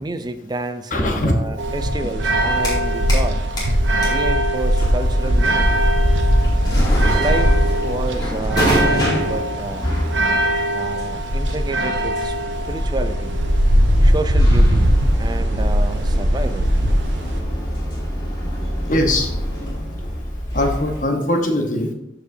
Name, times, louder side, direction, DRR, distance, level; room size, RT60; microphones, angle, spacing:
voice 1, 0.0-3.4 4.1-5.9 7.1-9.9 10.7-12.4 12.6-13.4 14.0-14.9 15.2-16.7 20.0-20.1, right 2 dB, 20° right, 9 dB, 0.4 m, -29 dB
voice 2, 0.9-1.4 18.9-19.3 20.5-21.9, left 1 dB, 45° left, 3 dB, 1.1 m, -20 dB
sound 1, 1.6-17.4, equal, 85° right, 1.0 m, -19 dB
sound 2, 2.5-3.3 3.6-21.0, equal, 25° left, 2.6 m, -27 dB
13.0 x 4.9 x 2.7 m, 0.89 s
head